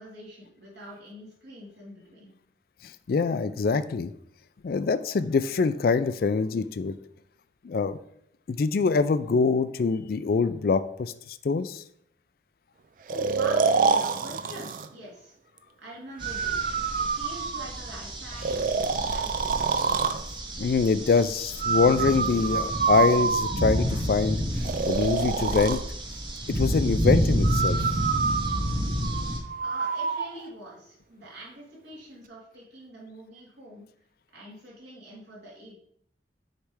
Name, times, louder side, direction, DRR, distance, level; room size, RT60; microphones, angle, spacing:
voice 1, 0.0-2.3 13.1-15.3 15.8-18.6 19.1-19.4 29.6-33.9 34.3-35.7, right 1 dB, 75° right, -5 dB, 2.6 m, -44 dB
voice 2, 2.8-4.1 4.6-6.9 7.6-8.0 8.5-11.8 20.6-24.4 24.8-25.8 26.5-27.8, left 4 dB, 55° left, 13 dB, 0.3 m, -24 dB
Breathing, 13.1-14.9 16.2-17.9 18.4-20.2 21.6-23.9 24.6-25.8 27.4-30.3, right 5 dB, 45° right, 0.3 m, -27 dB
sound 1, 16.2-29.4, equal, 25° right, 0.8 m, -30 dB
6.6 x 3.3 x 4.7 m, 0.70 s
head